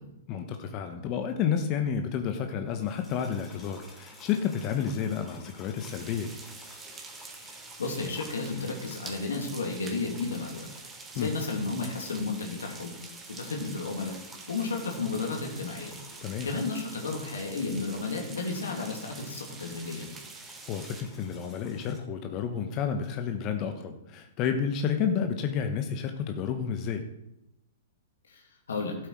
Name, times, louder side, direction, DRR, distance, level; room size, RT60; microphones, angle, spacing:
voice 1, 0.3-6.4 11.2-11.3 16.2-16.5 20.7-27.0, left 7 dB, 35° left, 6 dB, 1.0 m, -30 dB
sound 1, 2.7-22.0, left 1 dB, 5° left, 2.9 m, -52 dB
sound 2, 5.8-21.0, right 4 dB, 20° right, 1.6 m, -47 dB
voice 2, 7.5-10.7 11.1-12.9 13.3-14.2 14.5-16.0 16.4-20.1 28.3-29.0, left 3 dB, 70° left, 1 dB, 2.4 m, -33 dB
13.0 x 7.9 x 4.7 m, 0.88 s
figure-of-eight pair, 110°, 0 cm